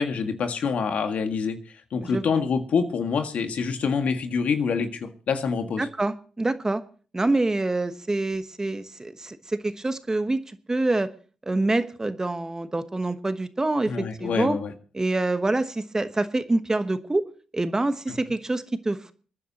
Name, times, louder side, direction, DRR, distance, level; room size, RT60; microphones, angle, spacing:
voice 1, 0.0-1.6 1.9-5.9 13.9-14.7, left 5 dB, 65° left, 6 dB, 1.9 m, -26 dB
voice 2, 2.0-2.4 5.8-6.8 7.1-11.1 11.5-14.6 14.9-17.2 17.5-19.1, right 2 dB, 25° right, 11 dB, 1.2 m, -26 dB
27.5 x 10.0 x 2.9 m, 0.39 s
supercardioid pair, 50°, 3 cm